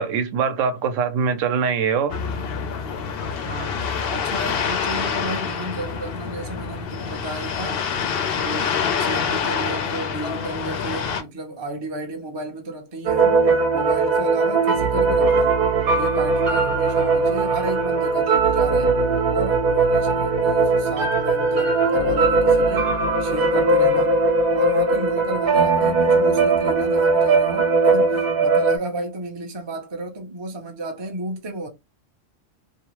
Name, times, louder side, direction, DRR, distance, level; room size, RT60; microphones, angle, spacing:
voice 1, 0.0-2.2, right 6 dB, 75° right, 0.9 m, -22 dB
sound 1, 2.1-11.2, left 6 dB, 60° left, 0.6 m, -26 dB
voice 2, 3.4-7.9 8.4-13.4 13.7-15.6 15.9-19.0 19.3-22.9 23.2-24.2 24.5-31.7, right 2 dB, 30° right, 0.5 m, -32 dB
sound 2, 13.0-28.8, right 3 dB, 50° right, 0.8 m, -19 dB
2.7 x 2.0 x 2.9 m
omnidirectional pair, 1.4 m